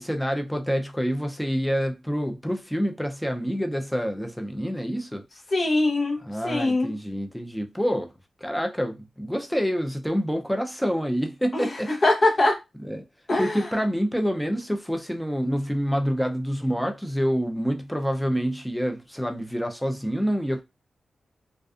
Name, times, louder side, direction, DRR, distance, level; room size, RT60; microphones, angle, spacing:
voice 1, 0.0-5.2 6.2-8.1 8.4-11.9 12.8-13.0 13.4-20.6, equal, 5° left, 0.5 m, -27 dB
voice 2, 5.5-7.0 11.5-12.6 13.3-13.7, left 2 dB, 50° left, 0.8 m, -23 dB
2.4 x 2.3 x 2.4 m
cardioid pair, 50°, 0 cm